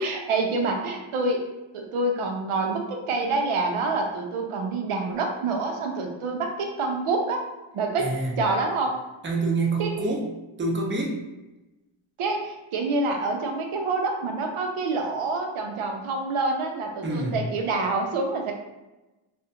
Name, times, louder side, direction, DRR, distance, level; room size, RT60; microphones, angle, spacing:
voice 1, 0.0-1.4 1.7-7.4 7.7-8.1 8.4-8.9 9.8-9.9 12.2-18.5, right 3 dB, 80° right, 2 dB, 0.5 m, -27 dB
voice 2, 8.0-8.4 9.2-10.2 10.6-11.2 17.0-17.4, right 2 dB, 25° right, -1 dB, 0.5 m, -26 dB
2.4 x 2.1 x 2.8 m, 1.0 s
cardioid pair, 60°, 50 cm